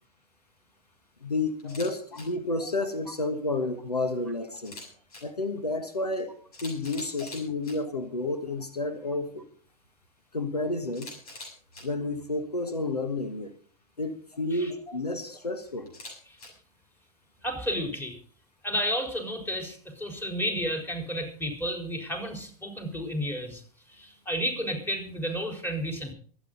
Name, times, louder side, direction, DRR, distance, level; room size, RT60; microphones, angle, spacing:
voice 1, 1.2-4.8 5.2-6.3 6.6-9.5 10.3-11.1 11.8-13.5 14.0-15.9, left 2 dB, 90° left, 10 dB, 1.5 m, -31 dB
Camera, 1.6-2.2 4.6-5.2 6.1-6.2 6.5-7.7 10.9-11.8 15.9-16.5, left 2 dB, 70° left, 7.1 m, -43 dB
voice 2, 14.5-15.0 16.3-16.4 17.4-18.1 18.6-23.6 23.9-26.1, equal, 10° left, 4 dB, 4.1 m, -32 dB
24.0 x 9.0 x 3.9 m, 0.44 s
figure-of-eight pair, 90°, 20 cm